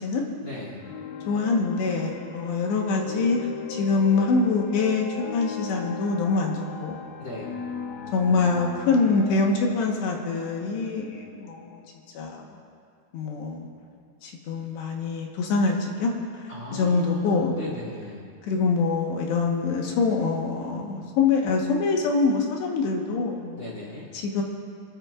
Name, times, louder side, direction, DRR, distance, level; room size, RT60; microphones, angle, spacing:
voice 1, 0.4-0.8 7.2-7.5 16.5-18.2 23.5-24.1, left 2 dB, 45° left, -6 dB, 1.5 m, -37 dB
sound 1, 0.8-12.1, left 7 dB, 85° left, 3.5 m, -39 dB
voice 2, 1.3-3.4 3.7-5.1 5.3-7.0 8.1-11.8 12.1-12.4 13.1-13.7 14.2-16.4 16.7-17.6 18.4-23.6 24.1-24.4, left 4 dB, 70° left, 0 dB, 3.3 m, -24 dB
27.5 x 13.5 x 2.5 m, 2.2 s
omnidirectional pair, 5.6 m